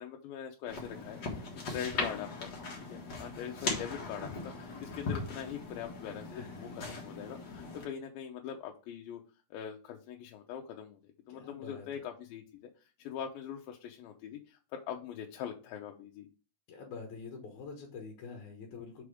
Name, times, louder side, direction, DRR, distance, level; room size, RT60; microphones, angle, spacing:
voice 1, 0.0-1.4 1.7-2.5 2.9-9.2 9.5-16.3, left 9 dB, 85° left, 2 dB, 2.5 m, -42 dB
sound 1, 0.7-7.8, left 3 dB, 45° left, 1.5 m, -39 dB
voice 2, 6.3-7.0 11.3-12.0 16.7-19.0, left 4 dB, 65° left, 2 dB, 2.1 m, -46 dB
5.8 x 4.9 x 4.9 m, 0.35 s
omnidirectional pair, 4.1 m